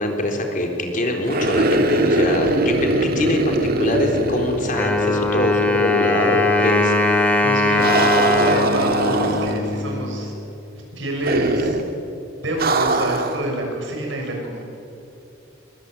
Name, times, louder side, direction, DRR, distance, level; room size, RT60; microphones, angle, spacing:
voice 1, 0.0-6.9, left 1 dB, 45° left, 3 dB, 3.9 m, -23 dB
sound 1, 1.3-5.4 5.7-5.8 7.8-9.8 11.2-11.9 12.6-13.4, right 2 dB, 50° right, 1.9 m, -21 dB
Wind instrument woodwind instrument, 4.7-10.4, left 2 dB, 10° left, 3.2 m, -20 dB
voice 2, 7.4-7.9 8.3-10.3 11.0-11.8 12.3-14.6, right 1 dB, 70° right, 1 dB, 6.6 m, -27 dB
23.0 x 22.5 x 9.2 m, 2.9 s
head